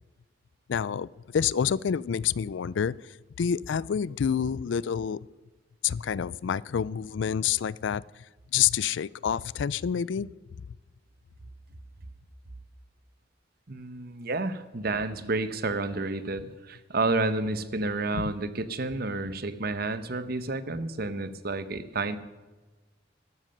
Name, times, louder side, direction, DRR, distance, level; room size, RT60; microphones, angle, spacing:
voice 1, 0.7-5.2 5.8-8.0 8.5-10.3 18.1-18.3, left 8 dB, 70° left, 22 dB, 0.4 m, -28 dB
voice 2, 13.7-22.2, right 3 dB, 55° right, 12 dB, 1.0 m, -30 dB
13.0 x 12.5 x 6.5 m, 1.2 s
head